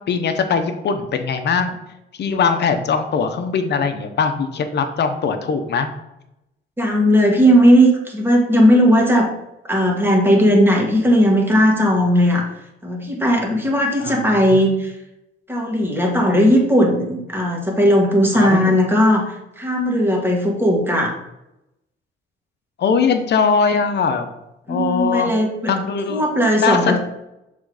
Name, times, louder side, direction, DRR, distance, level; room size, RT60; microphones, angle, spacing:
voice 1, 0.1-1.8 2.2-5.9 14.0-14.6 18.3-18.6 22.8-24.3 24.7-25.3 25.7-26.2 26.6-27.0, left 5 dB, 60° left, 8 dB, 0.9 m, -20 dB
voice 2, 6.8-9.3 9.7-12.5 12.8-14.9 15.5-21.1 24.7-25.7 26.1-27.0, equal, 10° right, 0 dB, 1.8 m, -16 dB
6.2 x 3.7 x 4.9 m, 0.88 s
cardioid pair, 90°, 20 cm